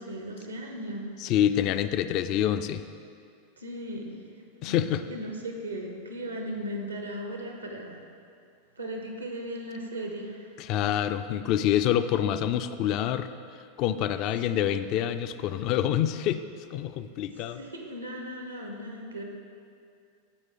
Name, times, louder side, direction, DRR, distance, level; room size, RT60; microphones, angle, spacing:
voice 1, 0.0-1.1 3.6-4.2 4.6-8.0 8.8-10.6 14.4-14.7 17.3-19.2, equal, 90° right, 2 dB, 1.0 m, -37 dB
voice 2, 1.2-2.8 4.6-5.0 10.6-13.3 13.8-16.4 16.7-17.6, left 10 dB, 45° left, 11 dB, 0.3 m, -26 dB
14.5 x 4.9 x 3.9 m, 2.3 s
figure-of-eight pair, 90°, 0 cm